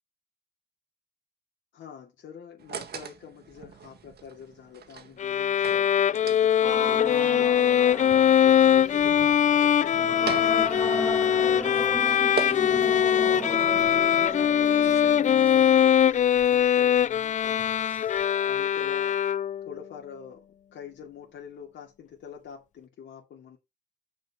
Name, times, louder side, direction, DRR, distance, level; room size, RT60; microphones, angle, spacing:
voice 1, 1.7-7.7 8.4-11.8 13.4-17.7 18.5-19.2 19.6-20.4 20.7-23.6, left 8 dB, 70° left, 2.6 m, -45 dB
sound 1, 2.6-15.0, right 6 dB, 55° right, 1.7 m, -42 dB
Bowed string instrument, 5.2-19.7, left 9 dB, 40° left, 0.4 m, -22 dB
sound 2, 6.6-16.7 17.0-17.2 17.6-18.2, left 1 dB, 5° left, 2.3 m, -35 dB
6.3 x 5.3 x 5.6 m
cardioid pair, 90°, 20 cm